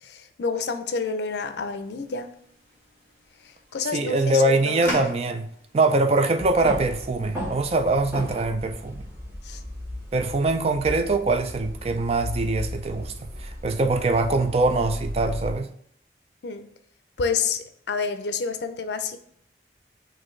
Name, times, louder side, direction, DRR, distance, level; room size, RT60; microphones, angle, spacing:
voice 1, 0.0-2.3 3.7-4.9 9.4-9.6 16.4-16.7 17.2-19.2, left 5 dB, 75° left, 0.5 m, -29 dB
sound 1, 1.2-7.8, equal, 10° left, 1.5 m, -40 dB
voice 2, 3.9-5.5 5.7-9.0 10.1-15.7, right 2 dB, 35° right, 0.4 m, -23 dB
sound 2, 6.4-15.5, equal, 15° right, 1.2 m, -36 dB
6.2 x 2.7 x 3.2 m
head